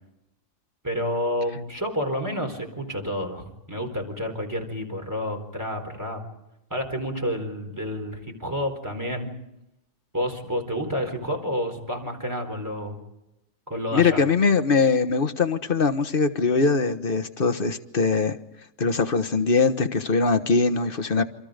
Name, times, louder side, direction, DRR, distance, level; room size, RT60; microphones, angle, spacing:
voice 1, 0.8-6.2 6.7-9.3 10.1-13.0 13.7-14.2, equal, 15° right, 3 dB, 4.4 m, -29 dB
voice 2, 13.9-18.4 18.8-21.2, left 4 dB, 45° left, 9 dB, 1.5 m, -22 dB
28.0 x 26.5 x 5.2 m, 0.90 s
omnidirectional pair, 1.4 m